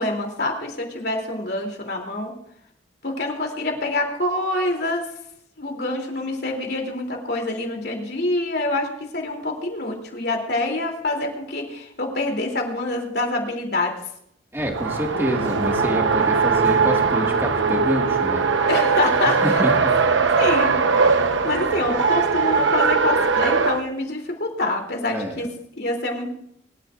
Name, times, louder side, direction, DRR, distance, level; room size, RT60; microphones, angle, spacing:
voice 1, 0.0-2.3 3.0-5.1 5.6-13.9 18.7-19.6 20.3-25.5 25.8-26.3, left 2 dB, 55° left, 2 dB, 3.0 m, -26 dB
voice 2, 14.5-18.5 19.4-20.0 25.1-25.4, equal, 10° right, 1 dB, 1.9 m, -27 dB
Race car auto racing, 14.6-23.8, right 5 dB, 85° right, 0.9 m, -20 dB
23.5 x 12.5 x 2.5 m, 0.73 s
head